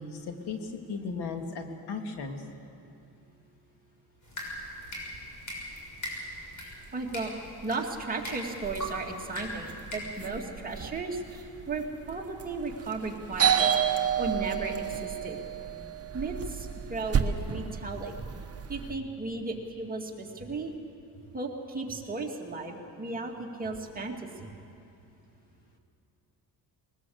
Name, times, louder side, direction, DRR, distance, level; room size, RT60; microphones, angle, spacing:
voice 1, 0.0-2.4, left 4 dB, 80° left, 4 dB, 2.2 m, -36 dB
sound 1, 4.2-10.0, equal, 50° left, 6.6 m, -40 dB
voice 2, 6.6-7.3 7.6-13.7 14.2-15.4 16.1-18.2 18.7-20.7 21.3-24.5, right 3 dB, 20° right, -1 dB, 2.5 m, -35 dB
sound 2, 8.6-18.9, right 8 dB, 40° right, 1.2 m, -31 dB
21.5 x 20.0 x 7.9 m, 2.6 s
cardioid pair, 120°, 39 cm